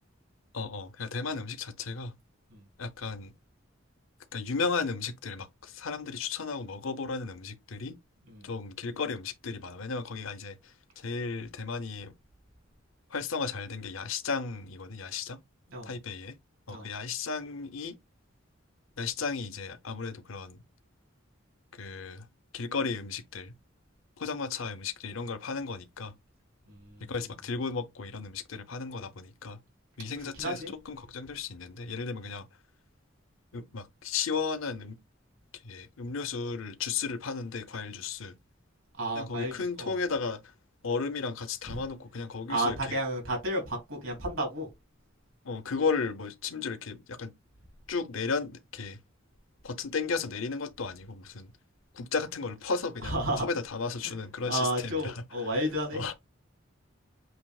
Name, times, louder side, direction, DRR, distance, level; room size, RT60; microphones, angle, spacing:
voice 1, 0.5-2.1 2.8-3.3 4.3-8.0 8.4-12.1 13.1-15.4 15.8-16.4 16.7-18.0 19.0-20.6 21.7-22.3 22.5-23.5 24.2-26.1 27.0-29.6 30.0-32.5 33.5-35.0 35.5-38.3 39.1-40.5 40.8-43.0 45.4-47.3 47.9-49.0 49.6-51.5 51.9-55.2 55.9-56.1, left 4 dB, 80° left, 0.7 m, -34 dB
voice 2, 26.7-27.1 30.4-30.7 39.0-39.9 42.5-44.7 53.0-53.4 54.0-54.1 54.5-56.0, right 1 dB, 85° right, 3.1 m, -32 dB
7.9 x 2.7 x 2.4 m
head